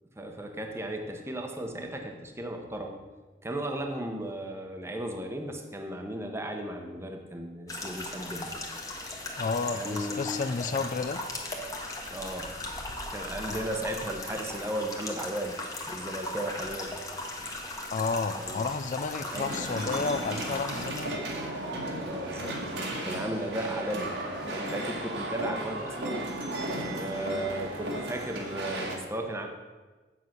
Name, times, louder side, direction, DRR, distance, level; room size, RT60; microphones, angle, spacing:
voice 1, 0.2-3.0 3.4-8.5 9.7-10.2 10.5-10.8 12.1-12.6 13.1-15.6 15.9-17.0 18.4-18.6 19.2-19.6 22.0-22.6 23.0-24.2 24.4-26.3 26.8-29.5, right 1 dB, 15° right, 3 dB, 1.0 m, -35 dB
sound 1, 7.7-21.0, left 2 dB, 20° left, 1.3 m, -38 dB
voice 2, 9.4-11.2 13.5-13.7 17.9-21.2, left 4 dB, 45° left, 10 dB, 0.4 m, -31 dB
sound 2, 19.3-29.0, right 1 dB, 85° right, 1.9 m, -35 dB
8.0 x 7.6 x 6.0 m, 1.3 s
head